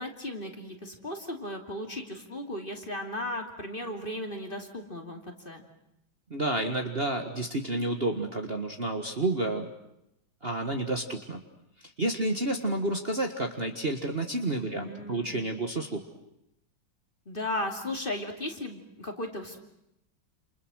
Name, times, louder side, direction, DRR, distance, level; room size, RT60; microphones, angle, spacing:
voice 1, 0.0-5.6 14.6-15.4 17.3-19.6, left 1 dB, 25° left, 3 dB, 2.9 m, -36 dB
voice 2, 6.3-9.7 10.4-11.4 11.8-16.0, right 2 dB, 30° right, 3 dB, 1.8 m, -30 dB
29.0 x 28.5 x 6.4 m, 0.82 s
omnidirectional pair, 2.2 m